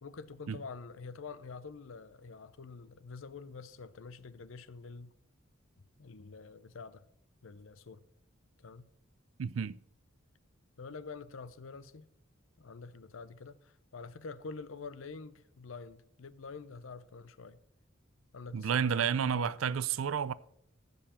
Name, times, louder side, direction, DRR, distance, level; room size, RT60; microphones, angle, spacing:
voice 1, 0.0-5.1 6.0-7.1 7.4-8.0 8.6-8.9 10.8-12.1 12.6-17.6 18.3-19.9, left 4 dB, 80° left, 0.6 m, -47 dB
voice 2, 9.4-9.8 18.5-20.3, right 7 dB, 85° right, 0.4 m, -31 dB
14.5 x 5.6 x 4.3 m
head